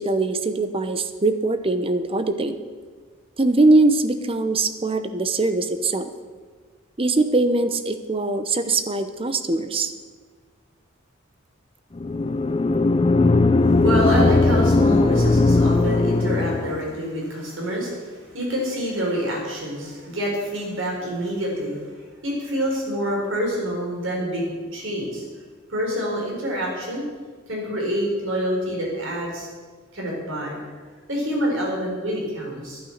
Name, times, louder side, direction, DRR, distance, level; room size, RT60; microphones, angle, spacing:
voice 1, 0.0-2.6 3.4-6.1 7.0-9.9, right 2 dB, 25° right, 10 dB, 0.8 m, -21 dB
sound 1, 12.0-16.9, left 3 dB, 25° left, 0.4 m, -18 dB
voice 2, 13.8-21.8 22.2-25.2 25.7-27.1 27.5-29.5 29.9-30.6 31.1-32.8, equal, 65° right, -1 dB, 4.4 m, -27 dB
11.5 x 11.0 x 6.6 m, 1.5 s
head